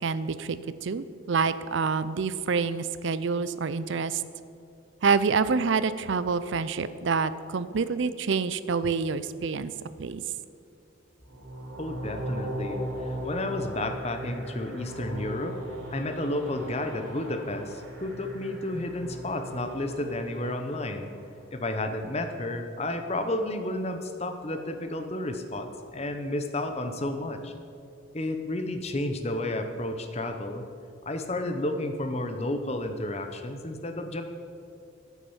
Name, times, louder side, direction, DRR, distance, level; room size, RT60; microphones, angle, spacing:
voice 1, 0.0-4.2 5.0-9.7 10.0-10.2, right 5 dB, 65° right, 14 dB, 0.5 m, -27 dB
sound 1, 11.2-21.4, right 1 dB, 80° right, 3.2 m, -38 dB
voice 2, 11.8-15.6 15.9-21.1 21.5-27.5 28.1-30.7 31.0-34.2, left 1 dB, 30° left, 6 dB, 0.8 m, -32 dB
9.9 x 8.3 x 7.2 m, 2.5 s
head